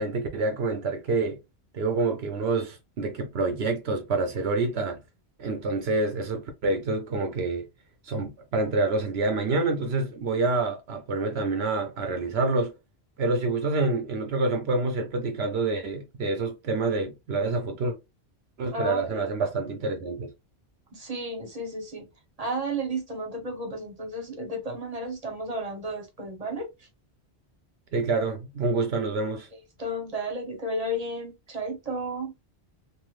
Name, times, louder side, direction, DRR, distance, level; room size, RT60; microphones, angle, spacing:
voice 1, 0.0-1.4 1.7-5.0 5.4-7.7 8.0-12.7 13.2-18.0 18.6-20.3 27.9-29.5, right 3 dB, 75° right, 0.9 m, -27 dB
voice 2, 18.7-19.3 20.9-22.1 22.4-26.7 29.8-32.3, right 1 dB, 40° right, 1.0 m, -33 dB
3.2 x 2.5 x 2.4 m
omnidirectional pair, 1.1 m